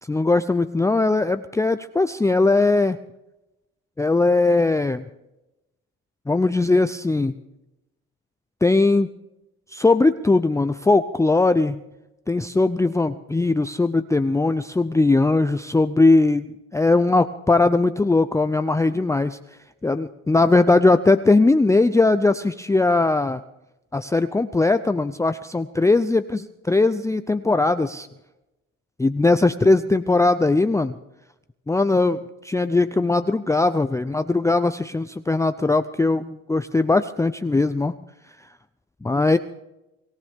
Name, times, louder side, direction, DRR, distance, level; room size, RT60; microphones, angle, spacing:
voice 1, 0.0-3.0 4.0-5.0 6.3-7.3 8.6-9.1 9.7-11.8 12.3-16.5 16.7-19.4 19.8-23.4 23.9-28.1 29.0-31.0 31.7-37.9 39.0-39.4, left 3 dB, 10° left, 10 dB, 0.5 m, -19 dB
25.0 x 15.5 x 3.6 m, 0.96 s
cardioid pair, 85°, 31 cm